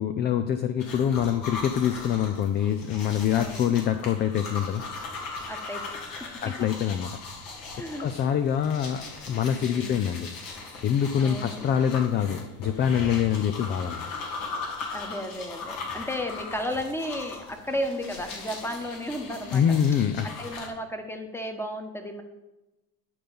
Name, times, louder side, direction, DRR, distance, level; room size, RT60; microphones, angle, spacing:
voice 1, 0.0-4.8 6.4-7.1 8.0-10.3 10.8-14.1 19.5-20.3, left 9 dB, 25° left, 9 dB, 0.3 m, -25 dB
sound 1, 0.8-20.7, left 3 dB, 65° left, 2.8 m, -39 dB
voice 2, 3.3-3.7 5.5-6.6 7.8-8.1 9.6-10.1 11.2-11.7 14.9-19.6 20.2-22.2, equal, 5° left, 5 dB, 1.2 m, -34 dB
11.0 x 3.9 x 6.8 m, 1.0 s
supercardioid pair, 100°, 48 cm